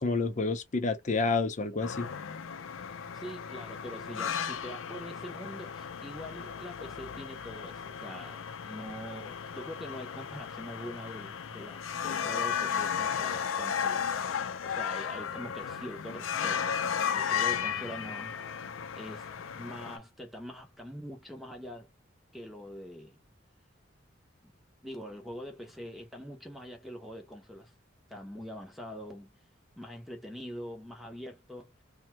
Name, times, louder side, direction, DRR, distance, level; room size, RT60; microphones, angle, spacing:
voice 1, 0.0-2.1, left 3 dB, 40° left, 0.6 m, -29 dB
sound 1, 1.8-20.0, left 7 dB, 85° left, 0.4 m, -35 dB
voice 2, 3.1-14.0 14.3-16.8 17.1-18.3 19.0-19.3 19.5-21.9 22.3-23.2 24.4-24.5 24.8-27.7 28.1-29.3 29.8-31.7, equal, ahead, 0.8 m, -44 dB
2.8 x 2.2 x 2.8 m
head